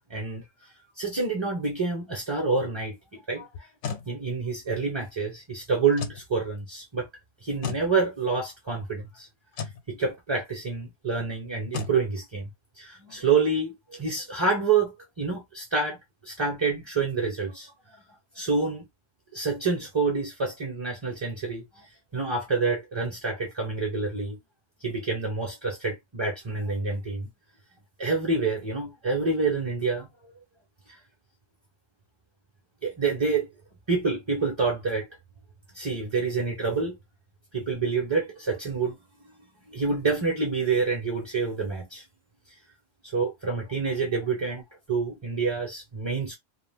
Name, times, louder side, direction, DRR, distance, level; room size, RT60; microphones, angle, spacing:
voice 1, 0.1-0.4 1.0-3.7 4.1-7.1 7.4-9.3 9.9-12.5 12.8-16.0 16.2-17.7 18.3-18.8 19.3-21.9 22.1-24.4 24.8-27.3 28.0-30.3 32.8-33.5 33.9-35.1 35.7-36.9 37.5-39.0 39.7-42.0 43.1-44.6 44.9-46.3, right 4 dB, 25° right, 0.7 m, -27 dB
sound 1, 3.5-4.1 5.9-6.2 7.6-7.9 9.5-9.8 11.7-12.0, left 6 dB, 90° left, 1.0 m, -33 dB
2.4 x 2.3 x 3.4 m
omnidirectional pair, 1.3 m